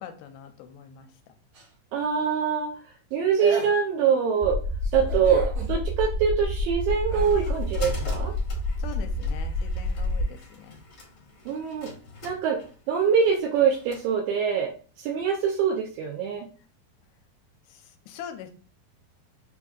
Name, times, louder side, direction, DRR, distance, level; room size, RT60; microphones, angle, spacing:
voice 1, 0.0-1.3 8.8-10.8 17.7-18.5, left 9 dB, 85° left, 7 dB, 2.5 m, -43 dB
sound 1, 1.5-2.2 3.1-3.2 3.4-4.1 4.8-5.7 7.1-7.4 8.1-8.2, right 5 dB, 60° right, 1.4 m, -37 dB
voice 2, 1.9-2.7 3.1-4.6 4.9-8.3 11.5-11.9 12.2-12.6 12.9-16.5, right 7 dB, 80° right, 1 dB, 2.1 m, -24 dB
sound 2, 4.4-10.2, left 2 dB, 30° right, 0.5 m, -29 dB
sound 3, 6.7-14.1, left 4 dB, 60° left, 1.3 m, -43 dB
7.7 x 2.6 x 2.4 m, 0.39 s
omnidirectional pair, 4.5 m